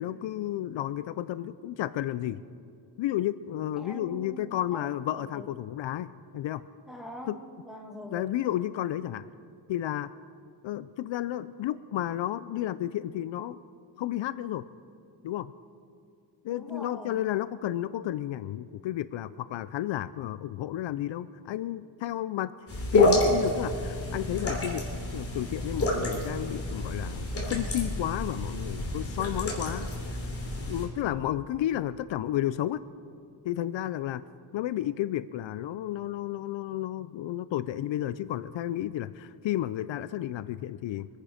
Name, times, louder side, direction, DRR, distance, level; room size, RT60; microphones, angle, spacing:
voice 1, 0.0-2.4 3.0-6.6 7.3-7.4 8.1-9.3 9.7-10.1 10.6-13.6 14.0-14.6 15.2-15.5 16.4-22.5 22.9-29.9 30.6-32.8 33.4-34.2 34.5-41.1, left 13 dB, 70° left, 15 dB, 0.5 m, -32 dB
voice 2, 3.8-4.9 5.2-5.5 6.8-8.4 16.5-17.2, equal, ahead, 0 dB, 1.7 m, -43 dB
sound 1, 22.7-30.9, left 1 dB, 30° left, 3.1 m, -29 dB
24.5 x 10.5 x 5.0 m, 2.4 s
wide cardioid pair, 170°, 46 cm